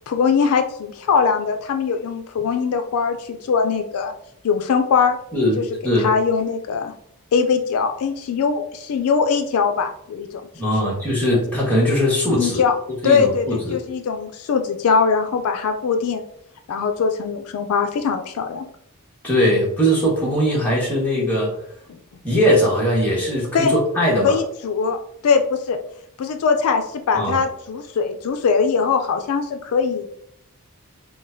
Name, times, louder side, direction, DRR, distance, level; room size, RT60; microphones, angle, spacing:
voice 1, 0.1-4.1 4.4-5.2 5.6-5.7 6.0-6.9 7.3-10.3 10.6-10.9 12.4-12.8 13.0-16.2 16.7-18.7 21.9-22.0 23.5-23.7 24.2-25.8 26.2-30.1, left 5 dB, 75° left, 6 dB, 0.4 m, -21 dB
voice 2, 10.6-12.6 13.0-13.8 19.2-21.5 22.2-24.3 27.1-27.4, equal, 5° left, -6 dB, 1.2 m, -20 dB
4.9 x 2.2 x 2.5 m, 0.70 s
head